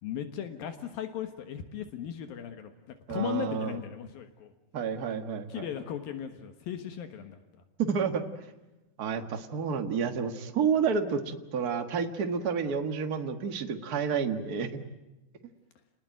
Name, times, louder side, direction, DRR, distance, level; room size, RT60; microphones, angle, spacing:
voice 1, 0.0-2.7 3.1-4.5 5.5-7.4 9.2-9.3, left 9 dB, 75° left, 8 dB, 3.1 m, -37 dB
voice 2, 3.1-3.8 4.7-5.6 7.8-8.2 9.0-14.8, right 6 dB, 50° right, 6 dB, 1.1 m, -30 dB
30.0 x 20.0 x 9.1 m, 1.0 s
omnidirectional pair, 4.3 m